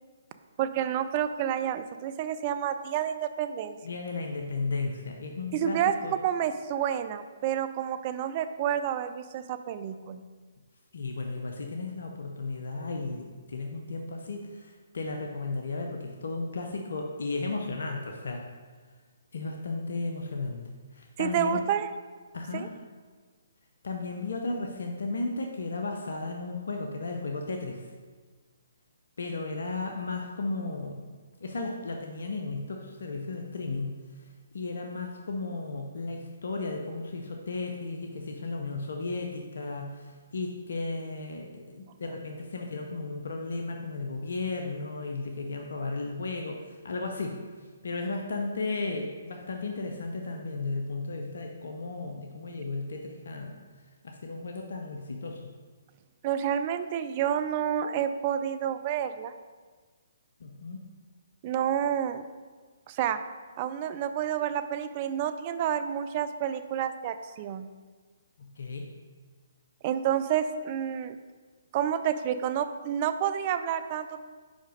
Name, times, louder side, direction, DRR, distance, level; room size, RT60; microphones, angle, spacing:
voice 1, 0.6-3.8 5.5-6.0 6.2-10.2 21.2-21.9 22.5-22.7 56.2-59.3 61.4-62.2 62.9-63.2 63.6-67.7 69.8-71.2 71.7-74.2, right 9 dB, 35° right, 10 dB, 0.4 m, -29 dB
voice 2, 3.8-6.1 10.9-18.5 19.3-20.6 20.9-21.6 22.3-22.7 23.8-27.8 29.2-31.1 31.4-34.0 34.5-47.4 47.8-53.5 54.0-55.4 60.4-60.8 68.4-68.8, left 3 dB, 65° left, 2 dB, 0.7 m, -34 dB
5.1 x 5.0 x 5.1 m, 1.4 s
figure-of-eight pair, 135°, 0 cm